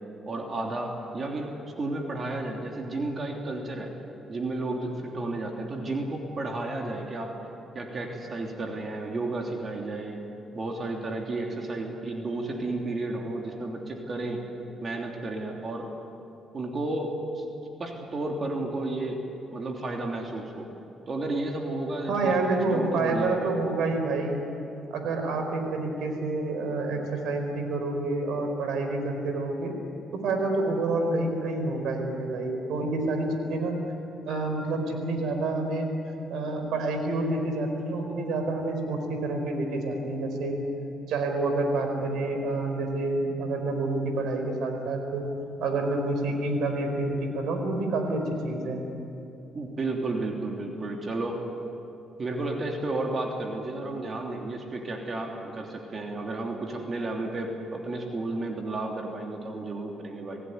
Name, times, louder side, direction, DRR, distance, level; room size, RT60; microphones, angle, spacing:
voice 1, 0.3-3.9 4.3-7.4 7.7-10.2 10.5-14.4 14.8-15.9 16.5-17.4 17.8-19.2 19.5-20.7 21.1-23.6 49.5-51.4 52.2-60.4, right 2 dB, 40° right, 1 dB, 3.2 m, -32 dB
voice 2, 22.1-24.4 24.9-29.7 30.1-33.8 34.2-35.9 36.3-40.6 41.1-45.3 45.6-48.8, right 2 dB, 80° right, 5 dB, 4.7 m, -28 dB
27.0 x 17.0 x 9.5 m, 2.9 s
cardioid pair, 90°, 0 cm